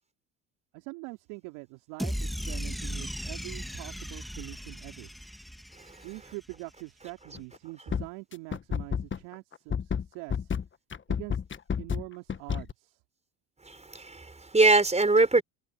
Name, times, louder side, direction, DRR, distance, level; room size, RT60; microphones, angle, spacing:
voice 1, 0.7-5.1 6.0-10.5 11.1-11.4 11.8-13.0, right 27 dB, 75° right, 4.5 m, -44 dB
sound 1, 2.0-6.3, equal, ahead, 2.6 m, -36 dB
sound 2, 7.3-7.6 7.9-12.7, left 7 dB, 30° left, 1.4 m, -30 dB
voice 2, 13.7-15.4, right 3 dB, 15° right, 4.9 m, -22 dB
hypercardioid pair, 65°, 40 cm